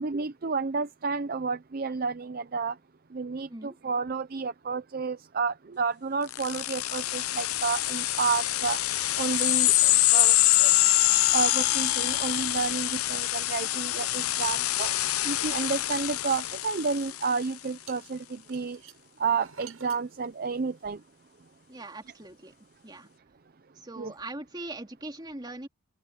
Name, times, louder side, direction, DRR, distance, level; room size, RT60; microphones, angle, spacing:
voice 1, 0.0-2.8 3.1-8.8 9.2-10.7 11.3-14.9 15.2-18.8 19.2-21.0 24.0-24.1, right 5 dB, 45° right, 0.5 m, -31 dB
sound 1, 6.3-17.4, left 15 dB, 90° left, 0.8 m, -25 dB
sound 2, 14.0-15.0 15.3-16.4 17.1-17.3 17.9-21.0, right 7 dB, 85° right, 7.4 m, -52 dB
voice 2, 21.7-22.5 22.8-23.1 23.8-25.7, right 2 dB, 20° right, 2.9 m, -41 dB
open air
head